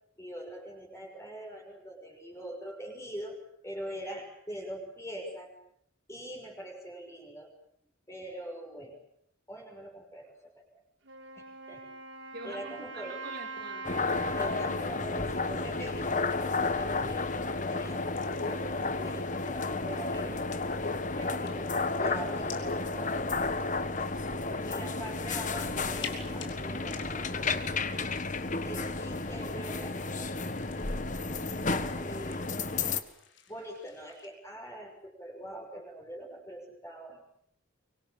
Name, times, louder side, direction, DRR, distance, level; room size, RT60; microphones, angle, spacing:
voice 1, 0.2-5.5 6.1-7.5 8.1-9.0 9.5-10.8 11.4-11.8 12.4-13.2 14.3-21.7 22.0-23.3 24.6-27.9 28.6-30.8 31.5-32.6 33.5-37.2, right 1 dB, 15° left, 2 dB, 6.2 m, -43 dB
Wind instrument woodwind instrument, 11.0-16.8, right 3 dB, 65° right, 4.9 m, -44 dB
voice 2, 12.3-13.8 24.2-24.7, right 2 dB, 50° right, 1 dB, 5.0 m, -45 dB
sound 1, 13.8-33.0, left 3 dB, 35° left, 1.5 m, -32 dB
sound 2, 16.0-34.3, left 7 dB, 60° left, 4.1 m, -52 dB
24.5 x 24.0 x 8.9 m, 0.69 s
head